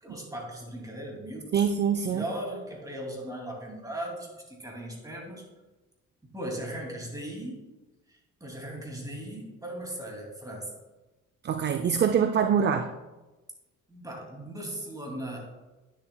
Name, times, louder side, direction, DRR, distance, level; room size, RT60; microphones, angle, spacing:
voice 1, 0.0-1.7 2.1-5.4 6.2-7.6 8.1-10.7 13.9-15.4, right 1 dB, 10° right, -1 dB, 2.4 m, -38 dB
voice 2, 1.5-2.2 11.4-12.9, right 7 dB, 35° right, 8 dB, 0.4 m, -24 dB
9.8 x 7.1 x 2.2 m, 1.1 s
cardioid pair, 90°, 30 cm